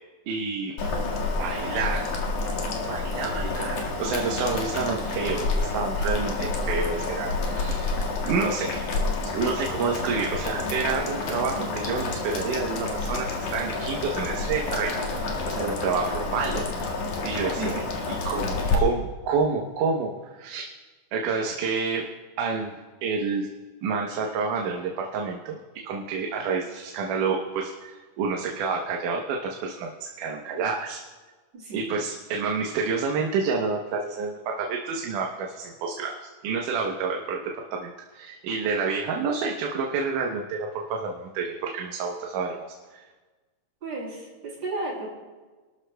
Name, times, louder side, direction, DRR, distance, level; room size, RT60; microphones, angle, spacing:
voice 1, 0.3-0.8 1.4-2.1 2.9-8.0 8.3-8.9 9.2-15.1 15.5-16.7 17.2-17.8 18.3-20.7 21.1-22.1 22.4-23.5 23.8-31.0 31.7-43.1, right 5 dB, 85° right, 0 dB, 2.5 m, -29 dB
Boiling, 0.8-18.8, left 3 dB, 75° left, 3.3 m, -29 dB
voice 2, 31.5-31.9 43.8-45.1, right 2 dB, 70° right, -5 dB, 6.5 m, -33 dB
27.0 x 13.0 x 2.2 m, 1.3 s
omnidirectional pair, 3.6 m